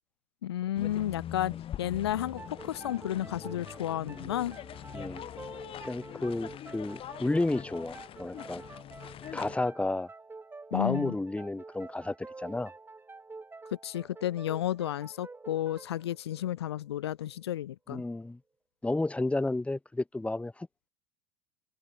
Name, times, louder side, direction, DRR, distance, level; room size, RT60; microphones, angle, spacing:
voice 1, 0.4-4.6 10.7-11.2 13.8-18.0, left 12 dB, 80° left, 0.6 m, -32 dB
sound 1, 0.8-9.6, left 11 dB, 45° left, 5.5 m, -43 dB
sound 2, 2.1-17.5, right 3 dB, 15° right, 4.1 m, -48 dB
voice 2, 5.8-8.6 9.3-10.1 10.7-12.7 17.9-18.4 18.8-20.9, left 2 dB, 10° left, 1.9 m, -32 dB
hypercardioid pair, 80°, 13 cm